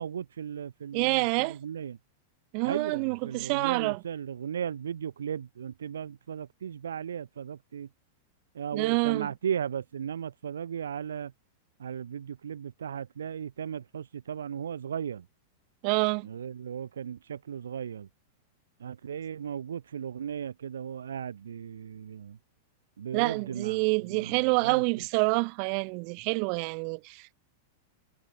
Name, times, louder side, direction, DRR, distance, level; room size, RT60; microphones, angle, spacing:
voice 1, 0.0-2.0 2.6-7.9 8.5-11.3 11.8-15.3 16.2-18.1 18.8-22.4 23.0-24.8, right 8 dB, 80° right, 1.2 m, -36 dB
voice 2, 0.9-1.6 2.5-4.0 8.7-9.3 15.8-16.3 23.1-27.4, right 40 dB or more, 50° right, 1.1 m, -27 dB
hypercardioid pair, 105°, 0 cm